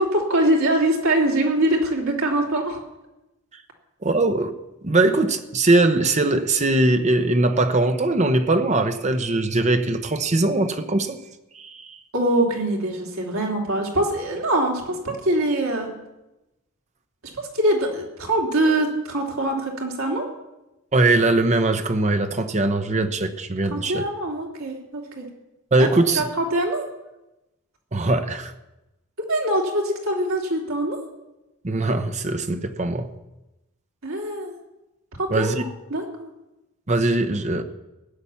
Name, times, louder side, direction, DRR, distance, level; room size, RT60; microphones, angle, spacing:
voice 1, 0.0-2.8 12.1-15.9 17.3-20.3 23.6-25.3 25.8-25.9 26.1-26.9 29.3-31.0 34.0-34.5 35.2-36.3, right 1 dB, 70° right, -1 dB, 3.1 m, -23 dB
voice 2, 4.0-4.5 4.8-11.2 11.5-12.0 20.9-24.0 25.7-26.2 27.9-28.5 31.6-33.1 35.3-35.6 36.9-37.6, right 2 dB, 35° right, 8 dB, 0.9 m, -21 dB
16.0 x 9.7 x 7.1 m, 0.98 s
head